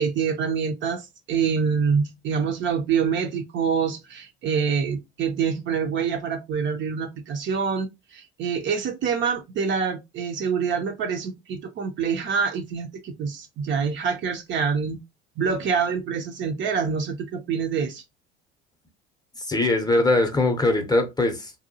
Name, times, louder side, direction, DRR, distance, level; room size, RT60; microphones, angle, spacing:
voice 1, 0.0-15.0 15.4-18.0, right 6 dB, 40° right, 0.5 m, -26 dB
voice 2, 19.4-21.5, left 2 dB, 15° left, 0.7 m, -21 dB
2.7 x 2.2 x 2.6 m
hypercardioid pair, 70°, 30 cm